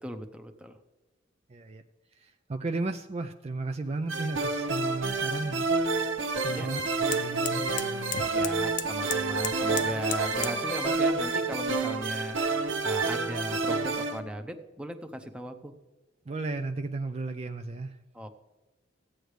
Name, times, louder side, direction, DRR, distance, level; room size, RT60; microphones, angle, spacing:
voice 1, 0.0-0.8 6.5-6.7 8.3-15.7 18.1-18.3, equal, 5° right, 6 dB, 0.7 m, -38 dB
voice 2, 1.5-1.8 2.1-6.0 6.4-8.2 16.3-18.0, right 3 dB, 35° right, 6 dB, 0.4 m, -35 dB
sound 1, 3.9-10.6, left 10 dB, 40° left, 0.4 m, -40 dB
sound 2, 4.1-14.2, right 3 dB, 90° right, 1.1 m, -29 dB
15.5 x 9.1 x 3.3 m, 1.2 s
head